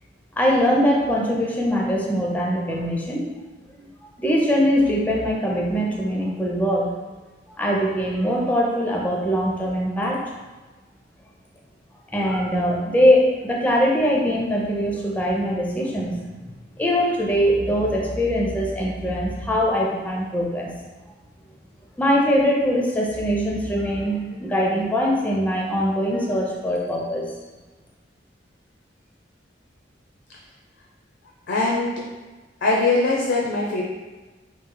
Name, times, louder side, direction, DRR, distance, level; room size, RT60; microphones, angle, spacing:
voice 1, 0.4-3.2 3.8-3.9 4.2-6.9 7.6-10.2 12.1-16.5 16.8-20.7 22.0-27.3, equal, 10° left, -2 dB, 0.5 m, -22 dB
voice 2, 31.5-32.0 32.6-33.8, left 3 dB, 75° left, -3 dB, 0.5 m, -21 dB
3.0 x 2.8 x 3.7 m, 1.2 s
head